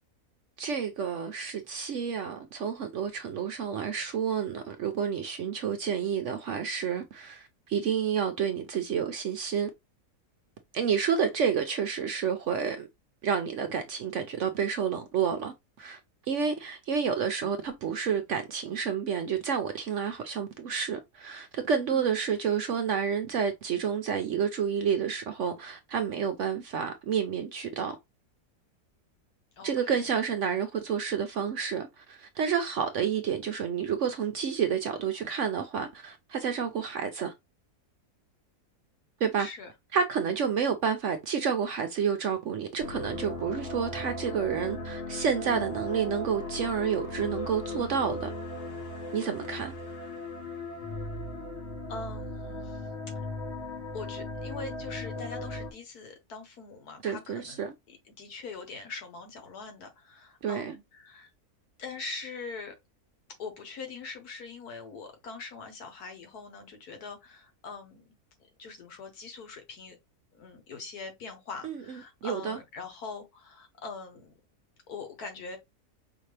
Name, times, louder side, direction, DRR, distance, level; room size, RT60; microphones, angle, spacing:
voice 1, 0.6-9.7 10.7-12.9 13.2-28.0 29.6-37.3 39.2-39.5 39.9-48.3 49.1-49.7 57.0-57.7 60.4-60.8 71.6-72.6, right 7 dB, 65° right, 0.8 m, -30 dB
voice 2, 29.6-30.0 39.4-39.7 40.2-40.3 51.9-52.8 53.9-61.3 61.8-62.8 63.4-68.1 68.6-70.0 70.3-74.3 74.9-75.6, left 4 dB, 70° left, 1.7 m, -42 dB
sound 1, 42.8-55.7, left 2 dB, 50° left, 1.3 m, -37 dB
5.0 x 2.7 x 3.2 m
omnidirectional pair, 1.7 m